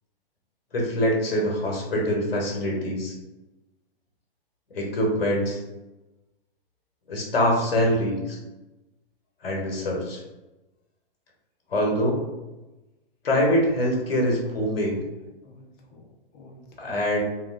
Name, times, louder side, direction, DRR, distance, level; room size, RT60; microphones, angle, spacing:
voice 1, 0.7-3.1 4.7-5.6 7.1-8.4 9.4-10.2 11.7-12.2 13.2-15.0 16.8-17.2, equal, 80° left, -2 dB, 0.9 m, -24 dB
voice 2, 14.2-15.1 15.4-16.0 16.3-17.0, left 3 dB, 30° left, 0 dB, 0.6 m, -47 dB
3.0 x 2.3 x 2.4 m, 1.1 s
hypercardioid pair, 120°, 29 cm